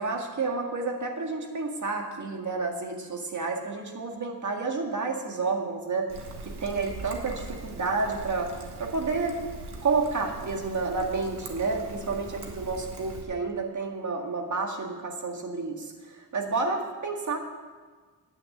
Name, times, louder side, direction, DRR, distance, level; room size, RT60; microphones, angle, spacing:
voice 1, 0.0-6.1 6.5-8.5 8.8-9.4 9.8-17.4, right 4 dB, 50° right, 2 dB, 2.0 m, -30 dB
Trickle dribble, 6.1-13.2, right 3 dB, 85° right, 1.7 m, -41 dB
10.0 x 9.4 x 7.9 m, 1.4 s
wide cardioid pair, 115°, 39 cm